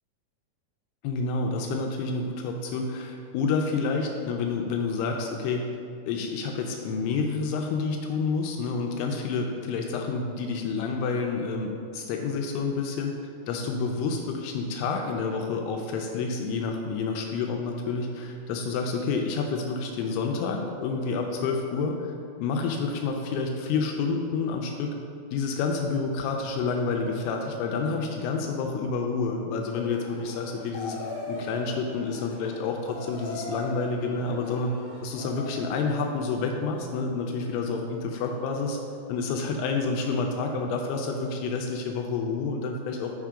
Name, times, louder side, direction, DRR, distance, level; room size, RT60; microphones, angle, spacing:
voice 1, 1.0-5.7 6.1-13.1 13.5-22.1 22.4-24.9 25.3-31.0 31.3-34.7 35.0-38.8 39.1-43.1, left 4 dB, 85° left, 2 dB, 2.4 m, -29 dB
sound 1, 29.6-35.8, left 2 dB, 65° left, 2.2 m, -39 dB
5.7 x 4.5 x 4.9 m, 2.4 s
omnidirectional pair, 4.8 m